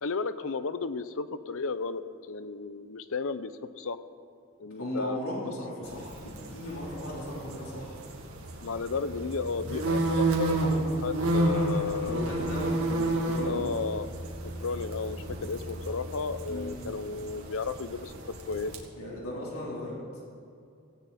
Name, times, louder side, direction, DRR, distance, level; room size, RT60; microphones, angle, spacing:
voice 1, 0.0-4.0 4.6-5.2 8.6-12.2 13.4-14.1 14.6-18.7, left 4 dB, 65° left, 13 dB, 0.7 m, -33 dB
voice 2, 4.7-8.0 11.7-13.7 16.5-16.7 19.0-20.0, left 1 dB, 85° left, -5 dB, 3.9 m, -37 dB
sound 1, 5.8-18.8, right 2 dB, 75° right, 2.3 m, -31 dB
17.5 x 17.0 x 4.3 m, 2.5 s
head